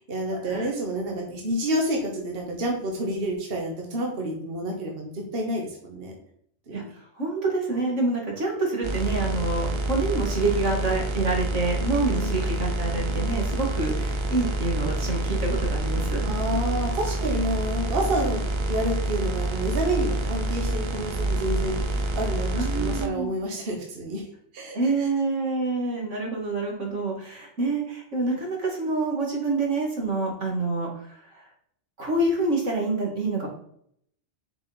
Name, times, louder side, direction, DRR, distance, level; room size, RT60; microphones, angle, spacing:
voice 1, 0.1-6.1 6.7-6.8 12.1-12.6 16.2-24.2 24.5-24.8, right 1 dB, 55° right, 1 dB, 1.4 m, -29 dB
voice 2, 7.1-16.4 22.5-23.3 24.7-31.5 32.0-33.5, right 3 dB, 90° right, -2 dB, 2.3 m, -27 dB
sound 1, 8.8-23.1, right 1 dB, 35° right, 0.5 m, -27 dB
6.8 x 5.0 x 4.2 m, 0.67 s
omnidirectional pair, 1.2 m